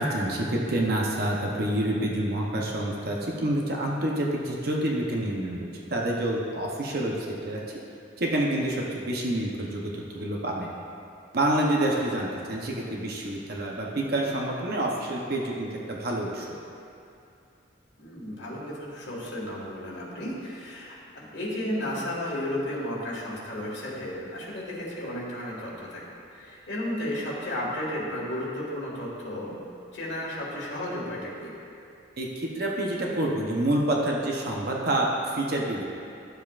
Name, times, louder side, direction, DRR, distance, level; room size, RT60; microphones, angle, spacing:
voice 1, 0.0-7.2 7.4-7.6 8.2-10.7 11.3-16.5 32.2-35.8, right 1 dB, 50° right, -2 dB, 0.7 m, -28 dB
voice 2, 18.0-26.0 26.3-29.6 29.9-31.5, left 1 dB, 60° left, -6 dB, 1.8 m, -33 dB
11.5 x 7.2 x 2.4 m, 2.6 s
head